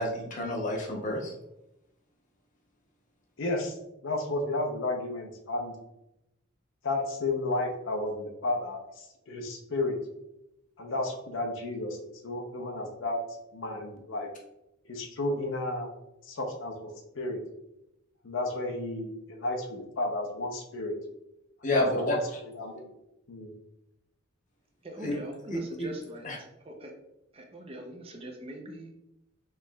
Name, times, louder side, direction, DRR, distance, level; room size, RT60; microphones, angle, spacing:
voice 1, 0.0-1.3 21.6-22.2 25.0-25.2 25.5-25.9 26.2-26.4, left 1 dB, 40° left, 0 dB, 0.8 m, -30 dB
voice 2, 3.4-3.8 4.0-5.7 6.8-10.0 10.8-12.0 12.2-13.2 13.5-14.3 14.9-15.9 16.2-17.4 18.2-21.0 21.7-22.2 22.5-22.9 23.3-23.5, left 2 dB, 70° left, 3 dB, 0.6 m, -32 dB
voice 3, 24.8-26.9 27.3-28.9, right 1 dB, 30° right, 2 dB, 0.5 m, -42 dB
4.5 x 3.0 x 2.2 m, 0.87 s
head